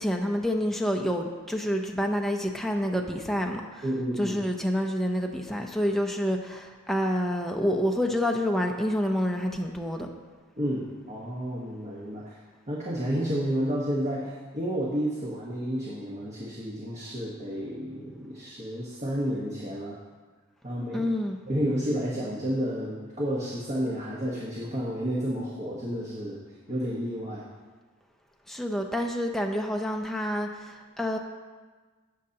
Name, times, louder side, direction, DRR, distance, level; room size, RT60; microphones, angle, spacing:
voice 1, 0.0-3.8 4.2-10.1 20.9-21.4 28.5-31.2, equal, ahead, 2 dB, 0.6 m, -28 dB
voice 2, 3.8-4.4 10.6-12.4 12.7-20.0 20.6-21.1 21.5-26.4 26.7-27.4, equal, 30° right, -6 dB, 1.2 m, -31 dB
17.0 x 6.5 x 2.9 m, 1.4 s
head